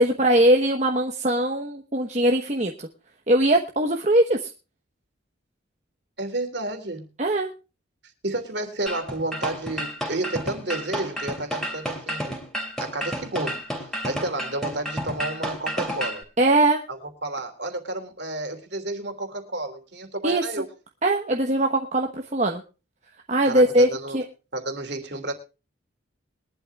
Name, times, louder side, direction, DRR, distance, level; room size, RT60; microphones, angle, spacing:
voice 1, 0.0-2.9 3.3-4.5 7.2-7.5 16.4-16.8 20.2-20.4 21.0-22.6 23.3-24.2, right 1 dB, 35° right, 3 dB, 1.2 m, -21 dB
voice 2, 6.2-7.1 8.2-12.4 12.8-13.6 14.0-16.2 16.9-20.7 23.4-24.2 24.5-25.3, right 2 dB, 55° right, 6 dB, 3.0 m, -31 dB
sound 1, 8.9-16.2, equal, ahead, 3.4 m, -31 dB
22.0 x 12.0 x 2.4 m, 0.32 s
head